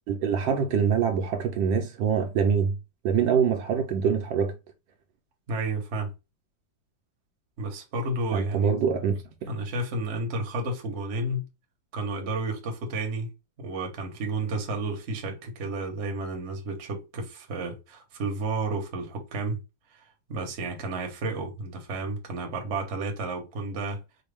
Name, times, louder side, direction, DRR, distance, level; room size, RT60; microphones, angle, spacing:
voice 1, 0.1-2.7 3.0-4.6 8.3-9.5, right 7 dB, 75° right, 1.3 m, -25 dB
voice 2, 5.5-6.1 7.6-8.7 9.5-11.5 11.9-13.3 13.6-19.6 19.9-20.0 20.3-24.0, right 2 dB, 45° right, 1.0 m, -31 dB
4.3 x 2.2 x 3.3 m
omnidirectional pair, 2.2 m